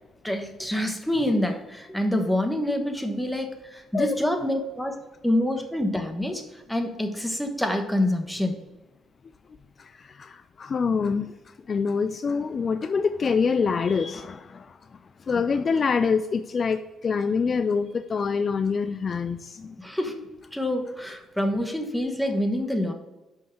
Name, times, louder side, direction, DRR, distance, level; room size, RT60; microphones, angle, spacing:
voice 1, 0.2-4.9 5.2-6.4 6.7-8.6 19.8-20.2 20.5-22.9, left 1 dB, 5° left, 4 dB, 1.2 m, -26 dB
voice 2, 10.2-11.3 11.7-14.6 15.3-19.8 21.5-21.6, left 5 dB, 45° left, 11 dB, 0.3 m, -25 dB
5.6 x 5.5 x 6.5 m, 1.1 s
cardioid pair, 90°, 0 cm